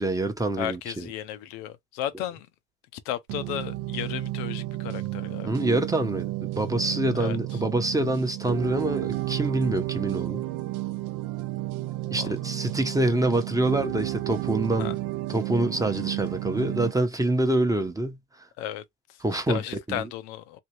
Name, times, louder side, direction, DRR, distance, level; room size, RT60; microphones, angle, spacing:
voice 1, 0.0-1.1 5.4-10.4 12.1-15.0 15.3-18.2 19.2-19.6 19.9-20.1, right 1 dB, 10° right, 0.7 m, -26 dB
voice 2, 0.6-2.5 3.0-5.5 7.2-7.6 12.1-12.3 14.8-14.9 18.6-18.8 19.1-20.6, left 12 dB, 85° left, 0.6 m, -34 dB
sound 1, 3.3-16.9, right 18 dB, 80° right, 0.5 m, -32 dB
2.8 x 2.5 x 3.0 m
supercardioid pair, 75°, 32 cm